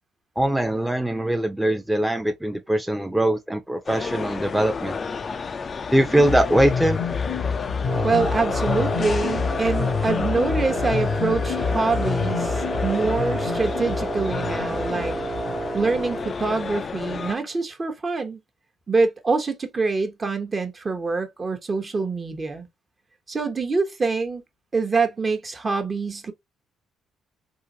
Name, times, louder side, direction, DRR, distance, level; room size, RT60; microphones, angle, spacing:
voice 1, 0.4-5.0 5.9-7.0, right 1 dB, 5° right, 0.6 m, -22 dB
sound 1, 3.9-17.4, left 5 dB, 40° left, 0.4 m, -31 dB
sound 2, 6.2-15.8, left 6 dB, 70° left, 0.7 m, -28 dB
Wind instrument woodwind instrument, 7.8-16.4, right 2 dB, 55° right, 1.2 m, -31 dB
voice 2, 8.0-15.2 15.7-18.4 18.9-22.7 23.3-24.4 24.7-26.3, right 4 dB, 35° right, 0.9 m, -25 dB
3.7 x 2.5 x 2.7 m
supercardioid pair, 65°, 0 cm